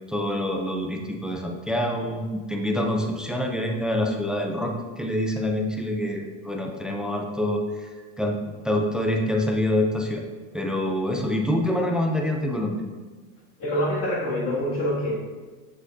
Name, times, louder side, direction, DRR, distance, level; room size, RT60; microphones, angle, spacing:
voice 1, 0.1-7.9 8.2-8.4 8.6-10.2 10.5-12.8, left 1 dB, ahead, 2 dB, 0.3 m, -26 dB
voice 2, 13.6-15.2, equal, 35° left, -4 dB, 2.1 m, -25 dB
7.5 x 6.4 x 2.6 m, 1.4 s
supercardioid pair, 120°, 38 cm